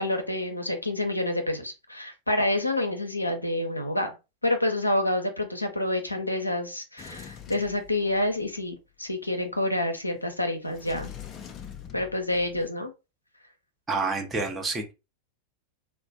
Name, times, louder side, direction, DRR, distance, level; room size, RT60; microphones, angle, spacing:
voice 1, 0.0-4.2 4.4-11.1 11.9-12.9, left 1 dB, 85° left, 0.5 m, -28 dB
Sliding door, 7.0-8.5 10.7-12.7, left 9 dB, 30° left, 0.4 m, -43 dB
voice 2, 13.9-14.9, right 3 dB, 15° right, 0.7 m, -28 dB
3.0 x 2.0 x 2.6 m
figure-of-eight pair, 90°, 0 cm